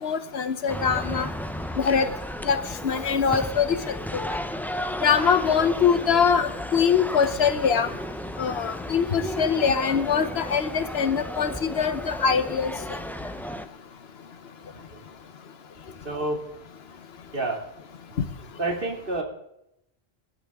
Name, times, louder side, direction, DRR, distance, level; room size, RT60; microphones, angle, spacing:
voice 1, 0.0-1.3 1.8-2.1 2.4-3.8 4.1-4.3 5.0-7.9 8.4-12.7, left 6 dB, 75° left, 11 dB, 1.2 m, -23 dB
sound 1, 0.7-13.7, equal, ahead, 0.5 m, -34 dB
voice 2, 16.0-16.4 17.3-17.6 18.6-19.2, right 2 dB, 60° right, 2 dB, 2.7 m, -29 dB
19.0 x 12.0 x 3.6 m, 0.79 s
omnidirectional pair, 1.1 m